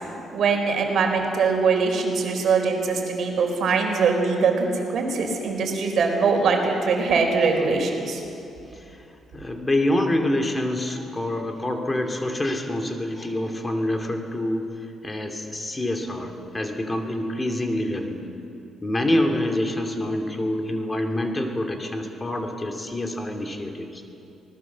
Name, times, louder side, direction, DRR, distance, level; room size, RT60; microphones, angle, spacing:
voice 1, 0.3-8.2, right 4 dB, 65° right, 3 dB, 4.5 m, -22 dB
voice 2, 8.7-9.1 9.3-18.3 18.8-24.0, left 1 dB, 20° left, 4 dB, 2.7 m, -26 dB
25.5 x 19.5 x 7.4 m, 2.7 s
cardioid pair, 90°, 0 cm